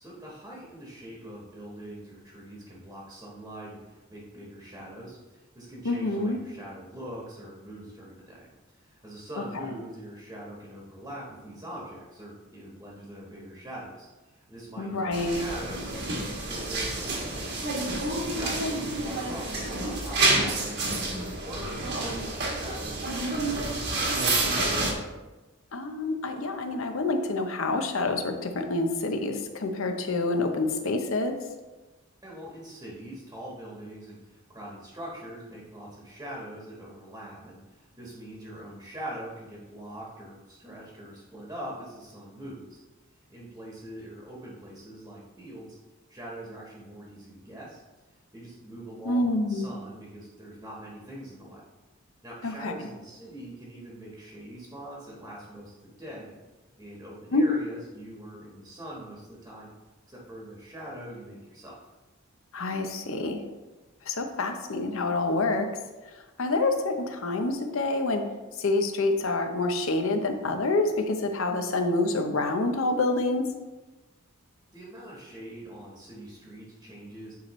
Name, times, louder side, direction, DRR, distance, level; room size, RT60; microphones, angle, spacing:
voice 1, 0.0-8.5 8.8-17.5 18.3-23.9 32.2-42.8 43.3-45.8 46.1-47.8 48.3-51.6 52.2-56.4 56.8-59.7 60.1-61.7 74.7-77.3, right 1 dB, 15° right, -4 dB, 1.2 m, -43 dB
voice 2, 5.8-6.4 14.8-15.4 18.6-18.7 25.7-31.3 49.1-49.7 52.4-52.7 57.3-57.4 62.5-63.4 64.1-65.7 66.4-68.3 68.6-73.5, left 2 dB, 65° left, 6 dB, 0.7 m, -27 dB
sound 1, 15.1-24.9, right 2 dB, 50° right, 1.2 m, -29 dB
9.3 x 4.5 x 3.1 m, 1.1 s
head